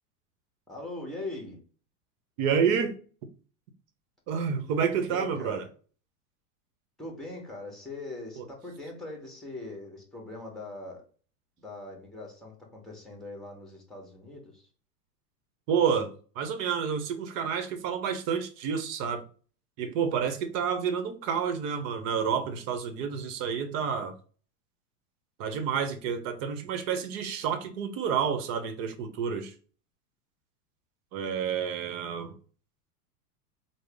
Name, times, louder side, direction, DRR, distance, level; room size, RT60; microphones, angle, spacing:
voice 1, 0.7-1.6 5.1-5.6 7.0-11.0 11.6-14.7, left 2 dB, ahead, 1.1 m, -41 dB
voice 2, 2.4-2.9 4.3-5.7 8.4-8.5 15.7-19.2 19.8-24.1 25.4-29.5 31.1-32.3, right 7 dB, 60° right, 0.8 m, -29 dB
3.7 x 2.0 x 3.4 m
hypercardioid pair, 115°, 46 cm